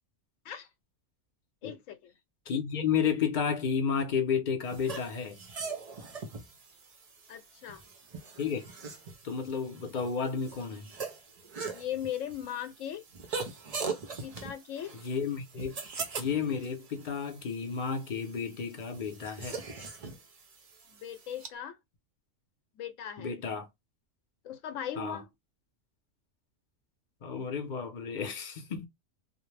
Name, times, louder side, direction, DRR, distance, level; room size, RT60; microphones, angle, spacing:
voice 1, 1.6-2.1 7.3-7.8 11.6-13.0 14.2-15.0 20.9-21.8 22.7-23.3 24.4-25.3, left 9 dB, 75° left, 0.9 m, -38 dB
voice 2, 2.5-5.4 8.4-8.6 9.2-10.9 15.0-15.7 16.2-19.6 23.2-23.7 25.0-25.2 27.2-28.9, left 6 dB, 50° left, 0.6 m, -32 dB
sound 1, 4.7-21.5, right 4 dB, 55° right, 0.4 m, -42 dB
2.3 x 2.1 x 3.1 m
omnidirectional pair, 1.4 m